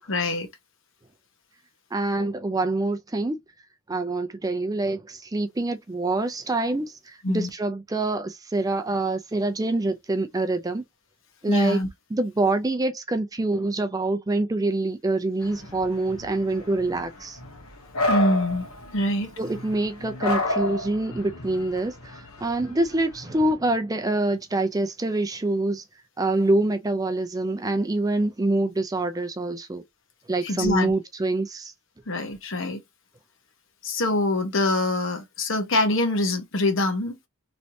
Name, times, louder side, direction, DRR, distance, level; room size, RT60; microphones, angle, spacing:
voice 1, 0.1-0.5 7.2-7.5 11.5-11.9 18.1-18.7 18.9-19.3 30.4-30.9 32.1-32.8 33.8-37.3, left 1 dB, 60° left, 1.0 m, -24 dB
voice 2, 1.9-3.4 3.9-10.8 11.4-11.8 12.1-17.4 19.4-25.8 26.2-29.8 30.3-31.7, right 2 dB, 15° right, 0.4 m, -26 dB
sound 1, 15.4-23.5, left 2 dB, 85° left, 1.2 m, -31 dB
3.2 x 2.8 x 2.7 m
head